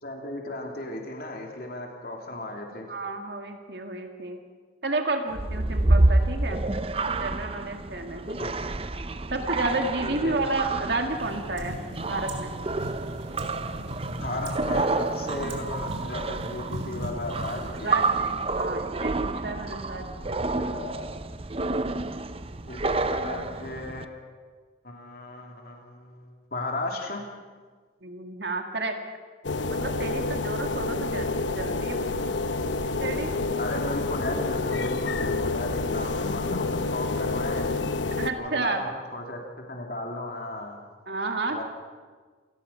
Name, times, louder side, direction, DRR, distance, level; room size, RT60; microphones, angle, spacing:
voice 1, 0.0-2.9 8.4-8.5 10.0-10.4 14.1-18.0 20.5-21.0 22.6-24.3 24.8-27.2 33.5-37.7 38.4-39.4 39.7-40.8 41.5-41.6, left 2 dB, 50° left, 1 dB, 3.1 m, -35 dB
voice 2, 2.9-4.4 4.8-6.6 6.9-8.4 9.3-11.8 12.1-12.6 17.7-20.5 28.0-29.0 29.7-31.3 31.6-32.0 33.0-33.3 38.2-38.8 41.1-41.6, right 2 dB, 60° right, 4 dB, 2.1 m, -31 dB
sound 1, 5.3-24.0, right 2 dB, 30° right, 0.7 m, -29 dB
sound 2, 10.8-19.1, right 1 dB, 90° right, 3.6 m, -38 dB
sound 3, 29.4-38.3, left 3 dB, 80° left, 1.0 m, -28 dB
27.5 x 18.5 x 5.8 m, 1.5 s
head